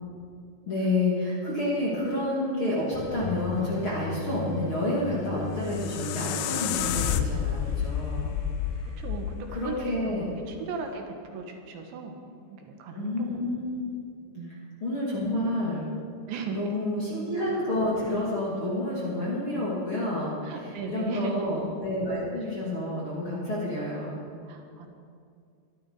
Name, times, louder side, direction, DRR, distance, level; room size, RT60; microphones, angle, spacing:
voice 1, 0.7-8.3 8.7-8.8 9.5-10.3 12.9-13.9 14.5-15.9 16.5-24.1, left 1 dB, 35° left, -6 dB, 2.5 m, -29 dB
sound 1, 2.9-9.3, left 4 dB, 60° left, 3.0 m, -38 dB
sound 2, 5.4-10.5, left 9 dB, 85° left, 2.3 m, -31 dB
voice 2, 9.0-12.2 12.5-13.4 14.3-14.6 16.3-16.7 20.4-21.5 24.4-24.9, right 4 dB, 75° right, 3 dB, 3.5 m, -37 dB
23.5 x 12.5 x 4.8 m, 2.3 s
omnidirectional pair, 5.4 m